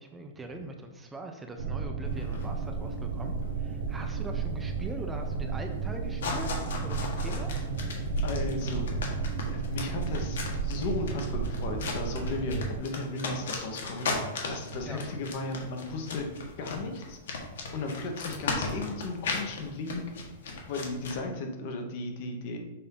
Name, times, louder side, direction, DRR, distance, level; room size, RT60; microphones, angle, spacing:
voice 1, 0.0-7.5 14.8-15.0, right 2 dB, 10° right, 4 dB, 0.5 m, -42 dB
sound 1, 1.6-12.8, right 5 dB, 80° right, 0.9 m, -33 dB
sound 2, 2.1-21.1, left 3 dB, 80° left, 1.3 m, -36 dB
voice 2, 8.2-9.0 9.5-16.3 16.6-17.2 17.7-20.0 20.7-22.6, left 3 dB, 40° left, 4 dB, 0.9 m, -35 dB
6.9 x 2.6 x 5.3 m, 1.1 s
supercardioid pair, 170°, 0 cm